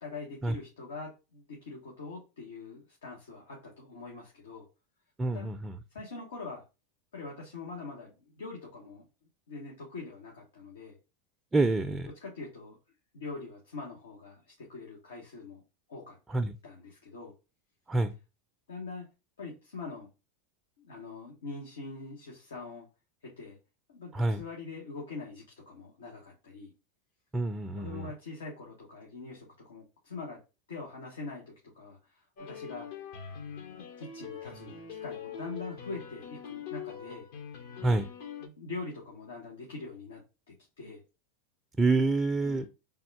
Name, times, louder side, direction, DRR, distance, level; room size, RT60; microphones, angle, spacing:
voice 1, 0.0-4.6 5.3-5.6 5.9-6.6 7.1-9.0 9.5-11.0 12.2-12.8 13.1-15.6 15.9-16.2 16.6-17.3 18.7-19.1 19.4-20.1 20.8-22.9 23.2-23.6 23.9-26.7 27.8-30.4 30.7-32.9 33.6-37.3 38.4-40.2 40.5-41.0 42.4-42.7, left 3 dB, 85° left, -1 dB, 1.1 m, -43 dB
voice 2, 5.2-5.8 11.5-12.1 16.3-16.5 17.9-18.1 24.1-24.4 27.3-28.1 37.8-38.1 41.8-42.7, right 2 dB, 15° right, 6 dB, 0.4 m, -27 dB
sound 1, 32.4-38.5, left 7 dB, 65° left, 0.9 m, -43 dB
3.5 x 2.3 x 4.5 m, 0.29 s
hypercardioid pair, 105°, 0 cm